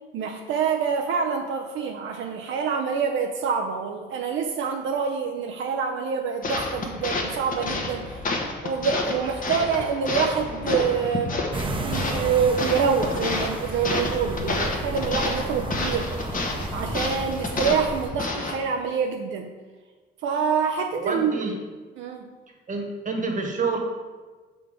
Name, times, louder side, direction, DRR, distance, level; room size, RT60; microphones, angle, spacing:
voice 1, 0.1-8.3 8.6-11.4 11.8-16.1 16.7-19.5 20.2-21.5 22.0-22.3, right 6 dB, 80° right, 2 dB, 0.5 m, -26 dB
sound 1, 6.4-18.6, left 3 dB, 45° left, 1.1 m, -30 dB
sound 2, 11.5-18.1, right 2 dB, 25° right, 0.7 m, -33 dB
voice 2, 20.9-21.5 22.7-23.8, right 4 dB, 40° right, 2 dB, 1.2 m, -28 dB
5.8 x 3.8 x 4.9 m, 1.3 s
cardioid pair, 90°, 20 cm